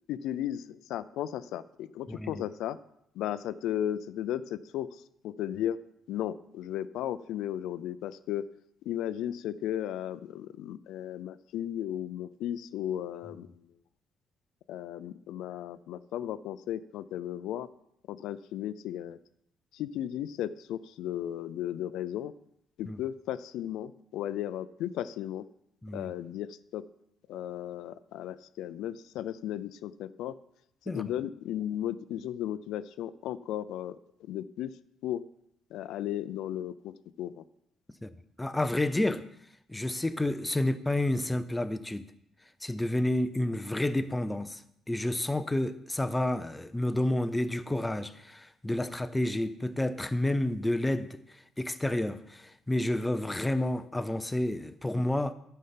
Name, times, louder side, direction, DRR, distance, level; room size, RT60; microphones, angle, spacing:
voice 1, 0.1-2.8 3.1-5.8 6.1-8.4 8.9-13.6 14.7-17.7 18.1-19.2 19.7-22.3 22.8-25.4 25.9-26.8 27.3-30.3 30.9-34.0 34.3-34.7 35.0-35.2 35.7-37.4, left 11 dB, 80° left, 0.4 m, -35 dB
voice 2, 2.1-2.4 22.9-23.0 25.8-26.1 30.9-31.0 38.0-38.1 38.4-39.2 39.7-42.1 42.6-44.6 44.9-51.2 51.6-55.3, left 1 dB, 5° left, 0.4 m, -30 dB
11.0 x 5.5 x 5.7 m
cardioid pair, 165°, 0 cm